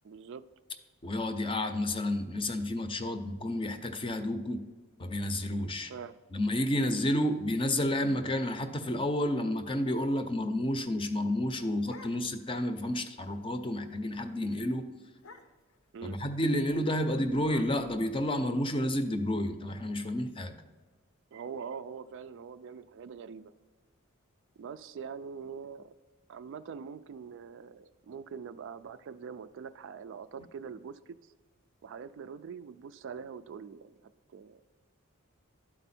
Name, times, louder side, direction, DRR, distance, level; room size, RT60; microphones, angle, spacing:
voice 1, 0.0-0.4 5.9-6.1 15.9-16.1 21.3-23.5 24.6-25.9 26.3-31.0 31.8-34.6, right 6 dB, 60° right, 12 dB, 0.3 m, -43 dB
voice 2, 1.0-4.7 5.0-5.9 6.3-14.9 16.0-20.6, left 1 dB, 25° left, 8 dB, 0.5 m, -30 dB
sound 1, 11.3-12.6 12.9-13.0 13.3-13.6 14.0-14.2 14.5-14.6 15.1-15.8 16.6-18.7, left 3 dB, 85° left, 0.7 m, -54 dB
12.0 x 4.4 x 4.2 m, 1.4 s
head